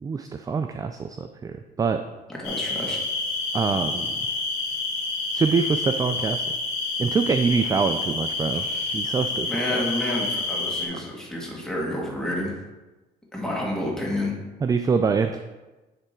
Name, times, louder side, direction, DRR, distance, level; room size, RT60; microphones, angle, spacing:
voice 1, 0.0-2.0 3.5-4.2 5.3-6.4 7.0-8.6 8.9-9.9 10.9-11.0 14.6-15.4, right 5 dB, 20° right, 7 dB, 0.3 m, -25 dB
sound 1, 2.4-10.9, left 3 dB, 85° left, 2.2 m, -28 dB
voice 2, 2.4-3.0 8.5-9.0 9.4-12.5 13.3-14.3, left 1 dB, 5° left, -3 dB, 1.9 m, -29 dB
9.9 x 3.5 x 4.4 m, 1.1 s
cardioid pair, 110°, 17 cm